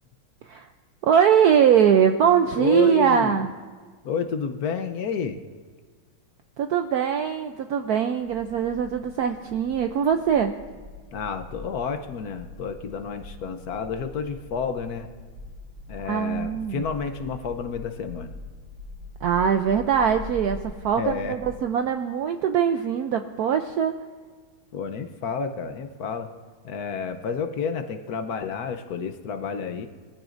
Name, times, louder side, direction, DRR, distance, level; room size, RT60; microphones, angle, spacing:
voice 1, 1.0-3.5 6.6-10.5 16.0-16.8 19.2-23.9, right 8 dB, 75° right, 6 dB, 0.9 m, -22 dB
voice 2, 2.6-3.4 4.0-5.4 11.1-15.1 15.9-18.4 21.0-21.3 24.7-26.3 26.6-29.9, left 6 dB, 60° left, 8 dB, 1.1 m, -30 dB
sound 1, 8.2-21.6, left 2 dB, 60° right, 5.8 m, -43 dB
22.0 x 14.5 x 2.5 m, 1.5 s
omnidirectional pair, 2.2 m